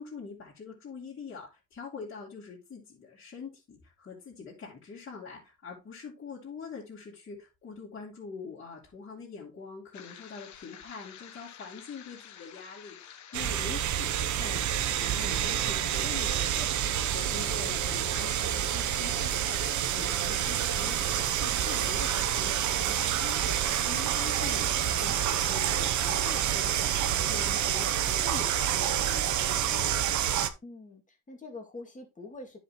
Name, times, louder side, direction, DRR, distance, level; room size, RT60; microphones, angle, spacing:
voice 1, 0.0-14.1 14.4-14.6 15.0-30.1, left 5 dB, 40° left, 2.9 m, -44 dB
sound 1, 9.9-28.1, left 9 dB, 70° left, 1.2 m, -49 dB
sound 2, 13.3-30.5, right 10 dB, 70° right, 0.8 m, -28 dB
voice 2, 30.6-32.6, left 2 dB, 25° left, 2.4 m, -45 dB
10.0 x 5.2 x 3.0 m
cardioid pair, 90°, 30 cm